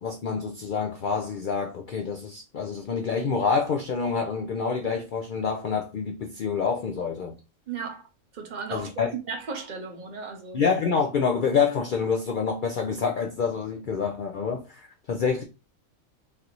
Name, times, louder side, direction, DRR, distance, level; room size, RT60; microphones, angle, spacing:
voice 1, 0.0-7.4 8.7-9.1 10.5-15.4, left 5 dB, 85° left, 0.4 m, -27 dB
voice 2, 7.7-8.0 8.3-10.6, right 5 dB, 50° right, 0.5 m, -35 dB
3.3 x 2.5 x 2.9 m
omnidirectional pair, 1.4 m